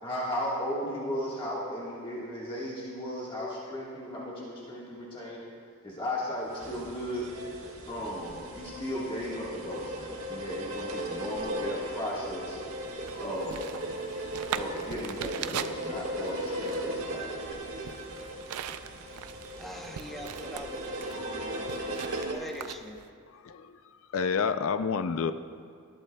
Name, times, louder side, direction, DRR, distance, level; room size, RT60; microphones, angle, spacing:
voice 1, 0.0-5.4 5.8-7.3 7.9-12.6 13.2-13.8 14.5-17.9, equal, 25° left, -6 dB, 1.4 m, -36 dB
sound 1, 6.5-22.3, right 1 dB, 65° right, 1.5 m, -37 dB
sound 2, 12.8-23.1, right 8 dB, 80° right, 0.4 m, -41 dB
voice 2, 19.6-22.0 22.3-23.0, equal, ahead, 1 dB, 0.7 m, -44 dB
voice 3, 21.1-21.9 23.3-23.7 24.1-25.3, left 5 dB, 65° left, 10 dB, 0.4 m, -30 dB
19.0 x 12.0 x 2.2 m, 2.2 s
head